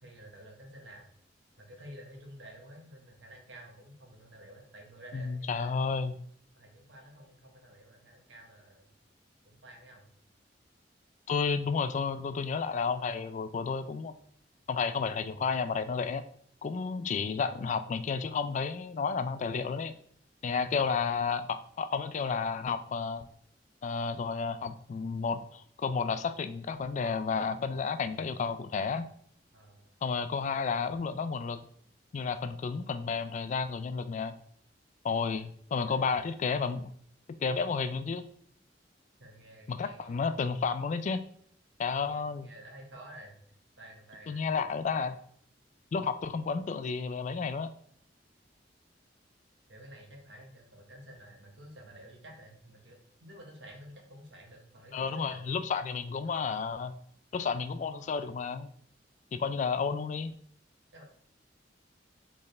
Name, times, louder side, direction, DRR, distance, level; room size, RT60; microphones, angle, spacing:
voice 1, 0.0-1.1 1.6-5.9 6.6-8.9 9.4-10.1 29.5-29.9 35.2-35.4 35.7-36.1 39.2-40.3 42.0-43.4 43.8-44.4 49.7-55.4 56.2-56.5 60.9-61.0, right 1 dB, 85° right, 1 dB, 1.1 m, -51 dB
voice 2, 5.1-6.2 11.3-14.1 14.7-16.2 16.6-19.9 20.4-23.3 23.8-29.1 30.0-31.6 32.1-34.3 35.0-36.9 37.4-38.2 39.7-41.2 41.8-42.5 44.3-45.2 45.9-47.7 54.9-56.9 57.3-58.7 59.3-60.3, left 5 dB, 40° left, 11 dB, 0.3 m, -31 dB
4.2 x 3.6 x 3.2 m, 0.62 s
head